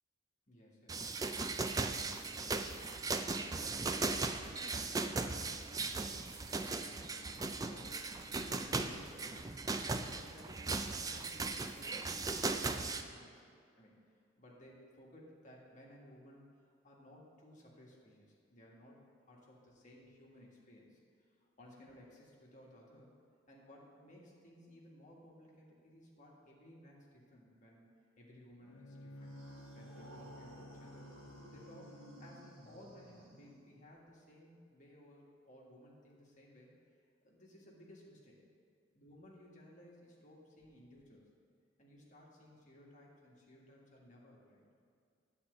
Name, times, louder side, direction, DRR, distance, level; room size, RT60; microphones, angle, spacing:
voice 1, 0.5-9.4 9.8-13.4 13.8-19.0 19.3-23.1 23.5-27.9 28.2-29.4 29.7-31.1 31.5-36.7 37.2-38.4 38.9-41.3 41.8-44.6, left 1 dB, 35° left, -3 dB, 1.6 m, -59 dB
sound 1, 0.9-13.0, right 3 dB, 15° right, 0.3 m, -38 dB
Bowed string instrument, 28.6-32.7, left 1 dB, 75° left, 1.0 m, -54 dB
sound 2, 29.2-34.0, right 1 dB, 85° right, 1.4 m, -57 dB
10.0 x 4.4 x 7.7 m, 2.3 s
head